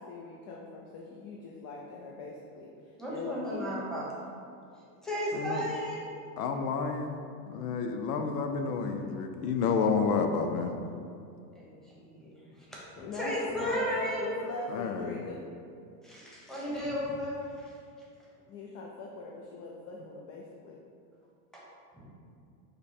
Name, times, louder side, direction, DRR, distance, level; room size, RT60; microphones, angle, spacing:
voice 1, 0.0-3.6 13.0-15.4 18.5-20.8, left 3 dB, 35° left, -2 dB, 0.4 m, -41 dB
voice 2, 3.0-4.1 4.7-6.1 11.5-12.8 13.1-14.3 16.0-17.8 18.2-18.3 21.5-21.6 21.9-22.1, equal, ahead, -7 dB, 1.0 m, -35 dB
voice 3, 6.4-7.2 7.5-10.7 14.7-15.3, left 5 dB, 90° left, 6 dB, 0.6 m, -30 dB
5.2 x 2.1 x 4.3 m, 2.4 s
supercardioid pair, 120°, 46 cm